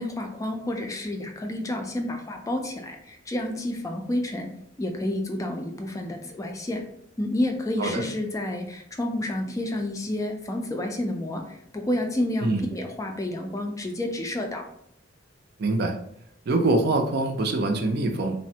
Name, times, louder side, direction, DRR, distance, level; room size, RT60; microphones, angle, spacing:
voice 1, 0.0-4.5 4.8-6.8 7.2-14.6, left 1 dB, 15° left, 3 dB, 0.3 m, -30 dB
voice 2, 15.6-16.0 16.5-18.4, right 2 dB, 55° right, 4 dB, 0.4 m, -24 dB
3.2 x 2.1 x 2.7 m, 0.71 s
head